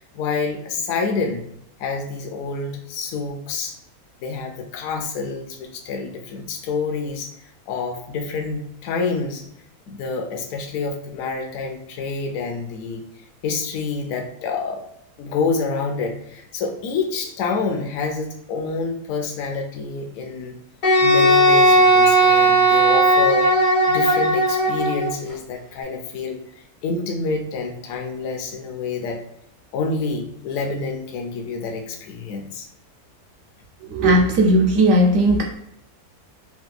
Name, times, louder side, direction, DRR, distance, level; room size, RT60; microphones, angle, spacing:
voice 1, 0.0-1.4 1.8-3.8 4.2-9.5 9.9-13.0 13.4-14.8 15.2-20.6 21.0-29.2 29.7-32.7, left 4 dB, 70° left, 3 dB, 0.9 m, -28 dB
Wind instrument woodwind instrument, 20.8-25.1, right 1 dB, 90° left, 1.5 m, -16 dB
voice 2, 33.9-35.6, right 1 dB, 65° right, 1 dB, 0.9 m, -16 dB
3.3 x 2.9 x 2.2 m, 0.76 s
omnidirectional pair, 1.6 m